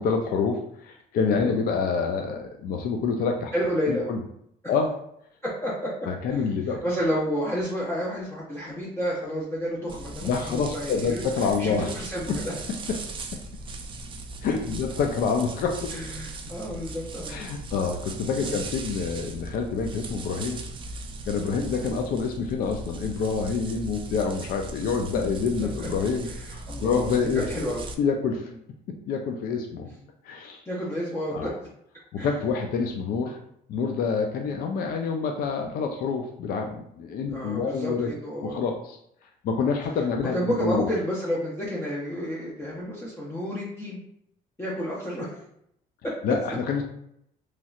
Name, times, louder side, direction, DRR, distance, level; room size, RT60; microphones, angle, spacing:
voice 1, 0.0-3.5 3.9-4.2 4.7-4.9 6.1-6.8 10.2-11.9 12.3-12.4 12.7-13.0 13.3-13.4 14.4-15.9 17.3-20.6 21.3-27.4 28.0-28.5 28.9-29.9 30.2-30.6 31.3-31.5 32.1-33.4 33.7-38.1 38.4-39.0 39.4-40.9 46.2-46.8, left 5 dB, 60° left, 3 dB, 0.4 m, -27 dB
voice 2, 3.5-4.1 5.4-5.9 6.3-6.4 6.8-12.5 15.9-17.4 18.4-18.6 21.6-21.7 25.1-26.4 26.7-27.8 30.7-31.7 32.2-32.3 37.3-38.6 40.3-44.0 44.6-45.4 46.0-46.1, equal, 15° left, -6 dB, 0.7 m, -31 dB
sound 1, 9.9-27.9, right 2 dB, 30° right, 0.4 m, -38 dB
3.1 x 2.7 x 2.4 m, 0.73 s
cardioid pair, 110°, 17 cm